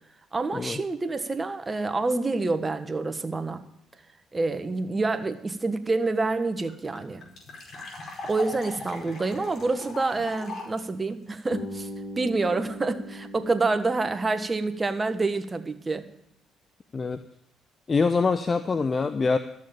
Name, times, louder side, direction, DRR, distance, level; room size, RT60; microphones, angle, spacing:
voice 1, 0.3-3.6 4.3-7.2 8.3-11.9 12.2-16.1, right 3 dB, 30° right, 10 dB, 1.4 m, -27 dB
sound 1, 6.0-6.1 6.3-6.4 6.7-10.8, left 2 dB, 55° left, 4.8 m, -39 dB
Bass guitar, 11.5-15.5, left 1 dB, 70° left, 2.8 m, -41 dB
voice 2, 17.9-19.4, left 4 dB, 35° left, 11 dB, 0.7 m, -24 dB
13.5 x 6.6 x 8.7 m, 0.73 s
hypercardioid pair, 55°, 0 cm